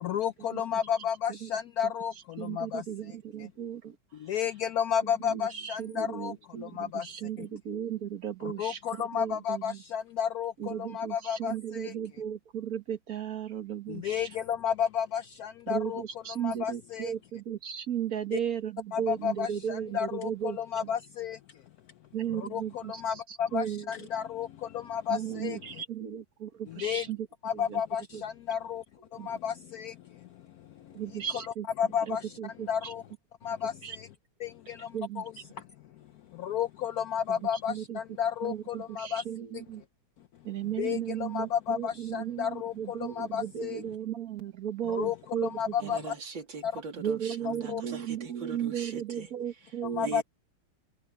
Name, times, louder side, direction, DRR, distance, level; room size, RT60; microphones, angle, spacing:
voice 1, 0.0-2.1 2.4-2.8 4.3-6.3 6.8-7.0 8.6-11.9 14.0-16.0 16.4-17.1 18.9-21.4 22.5-22.6 23.0-24.5 24.7-25.6 26.8-27.0 27.4-28.8 29.3-29.9 31.3-31.4 31.8-32.2 32.7-33.0 33.4-33.7 34.4-34.5 34.8-34.9 35.2-35.3 36.4-39.2 40.8-43.8 44.9-45.1 45.4-46.0 46.6-46.7 47.5-47.8 50.0-50.2, left 8 dB, 85° left, 0.8 m, -31 dB
voice 2, 2.4-3.9 5.3-8.8 9.2-9.8 10.6-14.3 15.7-20.6 22.1-22.9 23.5-23.8 25.1-27.2 27.7-27.8 29.2-29.3 31.0-31.7 32.1-32.7 33.8-34.0 34.9-35.2 37.7-38.0 38.4-39.8 40.5-45.5 45.8-45.9 47.0-50.2, right 9 dB, 50° right, 1.6 m, -35 dB
voice 3, 45.8-50.2, right 5 dB, 65° right, 3.3 m, -41 dB
omnidirectional pair, 2.3 m